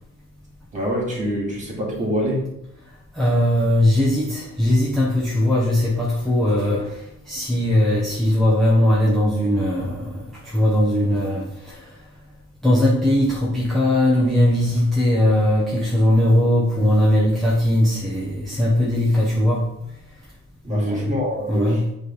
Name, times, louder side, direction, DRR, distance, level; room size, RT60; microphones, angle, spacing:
voice 1, 0.7-2.5 20.6-21.8, equal, 25° right, -2 dB, 2.1 m, -25 dB
voice 2, 3.1-11.9 12.6-19.7 20.7-21.1 21.5-21.8, left 1 dB, ahead, -6 dB, 0.8 m, -19 dB
7.7 x 3.3 x 4.7 m, 0.84 s
cardioid pair, 170°, 30 cm